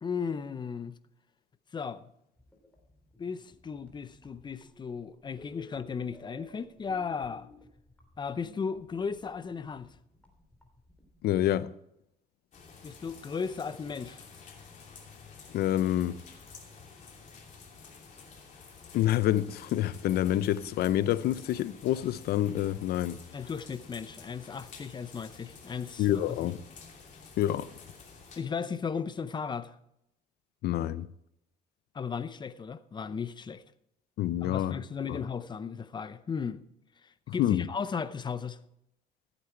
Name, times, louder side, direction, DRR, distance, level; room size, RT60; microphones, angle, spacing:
voice 1, 0.0-1.0 1.7-2.0 3.2-7.5 8.2-9.9 12.8-14.2 23.3-26.4 28.4-29.8 31.9-33.6 34.4-36.6 37.0-38.6, left 6 dB, 25° left, 0.6 m, -36 dB
sound 1, 2.4-11.4, left 3 dB, 10° left, 3.1 m, -55 dB
voice 2, 11.2-11.7 15.5-16.2 18.9-23.2 26.0-26.6 27.4-27.7 30.6-31.1 34.2-34.8 35.1-35.2 37.3-37.6, left 13 dB, 70° left, 0.6 m, -27 dB
sound 2, 12.5-28.4, left 5 dB, 45° left, 2.8 m, -51 dB
14.0 x 8.4 x 4.5 m
cardioid pair, 110°, 17 cm